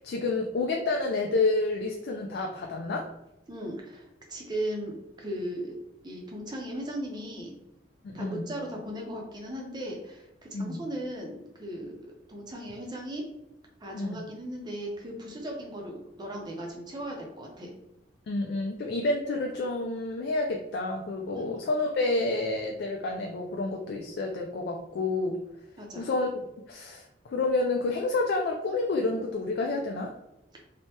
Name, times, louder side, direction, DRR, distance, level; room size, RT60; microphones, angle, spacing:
voice 1, 0.0-3.1 8.0-8.4 10.5-10.8 13.9-14.2 18.3-25.4 26.0-26.3 26.7-30.1, left 2 dB, 65° left, 1 dB, 0.3 m, -29 dB
voice 2, 3.5-5.7 6.0-7.6 8.1-12.0 12.3-13.3 13.8-17.7 21.3-21.4 25.8-26.1, right 1 dB, 25° right, 0 dB, 0.6 m, -37 dB
3.3 x 2.1 x 2.8 m, 0.89 s
head